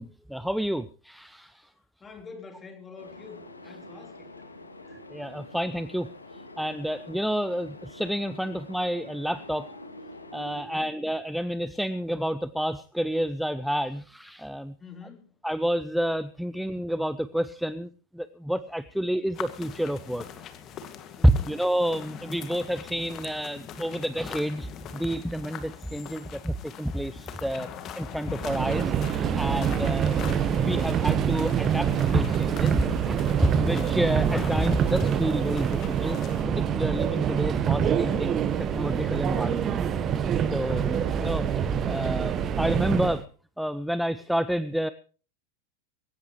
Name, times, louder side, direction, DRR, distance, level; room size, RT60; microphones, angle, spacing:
voice 1, 0.0-1.7 4.9-6.1 6.6-9.7 10.3-14.7 15.4-20.2 21.2-27.7 28.0-30.3 30.6-38.4 38.7-39.8 40.5-43.2 43.6-44.9, equal, ahead, 15 dB, 0.6 m, -29 dB
voice 2, 2.0-4.3 10.5-11.0 14.8-15.3 21.2-21.5 40.6-41.0, left 4 dB, 15° left, 4 dB, 3.6 m, -46 dB
sound 1, 3.0-10.6, left 2 dB, 80° left, 2.3 m, -46 dB
sound 2, 19.3-36.4, left 8 dB, 30° left, 2.1 m, -43 dB
Subway metro underground, 28.4-43.2, right 8 dB, 30° right, 1.3 m, -26 dB
20.5 x 17.5 x 3.2 m, 0.39 s
figure-of-eight pair, 90°, 0 cm